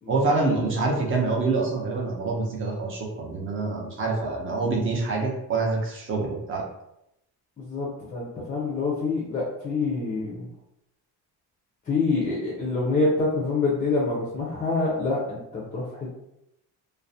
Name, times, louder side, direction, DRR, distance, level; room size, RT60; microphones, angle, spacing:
voice 1, 0.1-6.6, right 3 dB, 35° right, -1 dB, 0.6 m, -26 dB
voice 2, 7.6-10.5 11.9-16.1, left 3 dB, 25° left, -4 dB, 0.4 m, -26 dB
2.4 x 2.0 x 2.6 m, 0.83 s
cardioid pair, 165°, 37 cm